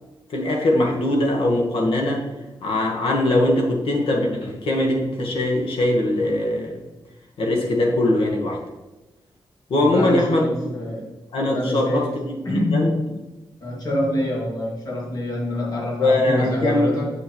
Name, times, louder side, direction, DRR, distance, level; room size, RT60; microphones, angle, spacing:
voice 1, 0.3-2.2 2.6-6.8 7.4-8.6 9.7-10.5 11.3-12.9 16.0-16.9, left 1 dB, 85° left, 1 dB, 1.4 m, -21 dB
voice 2, 9.8-11.0 11.5-12.2 12.5-13.0 13.6-17.1, left 1 dB, 45° left, -4 dB, 2.2 m, -25 dB
7.4 x 6.3 x 3.1 m, 1.1 s
wide cardioid pair, 125°, 9 cm